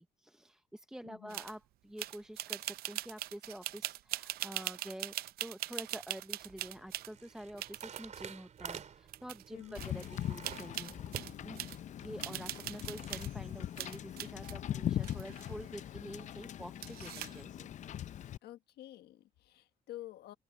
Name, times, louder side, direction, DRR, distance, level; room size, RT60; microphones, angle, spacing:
voice 1, 0.0-5.1 5.4-11.1 11.4-11.6 12.0-17.7, equal, 5° right, 0.8 m, -48 dB
voice 2, 1.0-1.4 9.5-9.8 18.4-20.3, left 14 dB, 75° left, 1.4 m, -49 dB
sound 1, 1.3-1.6 2.0-7.1 7.6-8.2 8.7-8.8 9.1-9.5 9.7-10.1 10.4-11.8 12.2-13.4 13.8-14.5 15.0-15.8 16.8-17.4, right 15 dB, 65° right, 0.5 m, -41 dB
sound 2, 6.0-13.3, right 7 dB, 45° right, 4.1 m, -50 dB
Wind / Boat Water vehicle, 9.8-18.4, left 11 dB, 45° left, 0.5 m, -41 dB
open air
cardioid pair, 110°, 17 cm